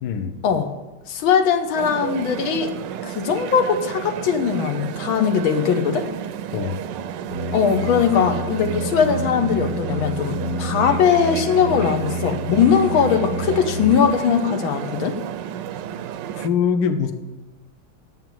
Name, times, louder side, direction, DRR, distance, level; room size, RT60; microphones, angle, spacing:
voice 1, 0.0-0.4 6.5-6.9 16.3-17.1, left 6 dB, 60° left, 7 dB, 1.4 m, -23 dB
voice 2, 1.1-2.7 3.0-6.1 7.5-15.2, left 7 dB, 80° left, 7 dB, 1.7 m, -20 dB
sound 1, 1.8-16.5, right 9 dB, 70° right, 1.1 m, -31 dB
sound 2, 7.3-13.9, equal, 40° left, 1.2 m, -29 dB
9.5 x 7.5 x 9.0 m, 1.1 s
omnidirectional pair, 2.2 m